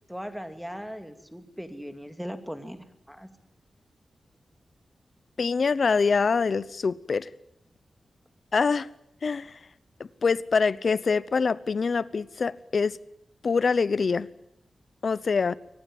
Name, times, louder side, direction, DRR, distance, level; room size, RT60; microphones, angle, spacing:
voice 1, 0.1-3.3, equal, ahead, 9 dB, 2.6 m, -39 dB
voice 2, 5.4-7.3 8.5-8.9 9.2-9.6 10.2-13.0 13.4-14.3 15.0-15.5, left 5 dB, 55° left, 19 dB, 0.9 m, -24 dB
25.0 x 18.5 x 9.4 m, 0.79 s
wide cardioid pair, 110°, 0 cm